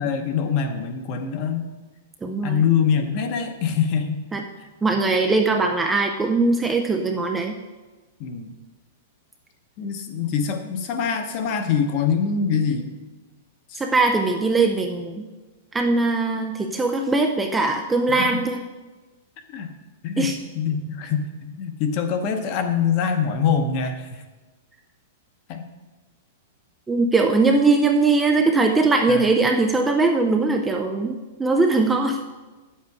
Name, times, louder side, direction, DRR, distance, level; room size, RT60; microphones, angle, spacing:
voice 1, 0.0-1.6 2.4-4.2 8.2-8.5 9.8-13.0 13.7-13.8 18.1-18.3 19.4-19.7 20.0-24.1 25.5-25.6 29.1-29.2, left 6 dB, 35° left, 7 dB, 0.9 m, -24 dB
voice 2, 2.2-2.6 4.3-4.4 4.8-7.5 13.8-15.3 15.7-18.6 20.2-20.4 26.9-32.2, right 3 dB, 10° right, 3 dB, 0.4 m, -20 dB
9.4 x 7.4 x 4.8 m, 1.2 s
supercardioid pair, 170°, 0 cm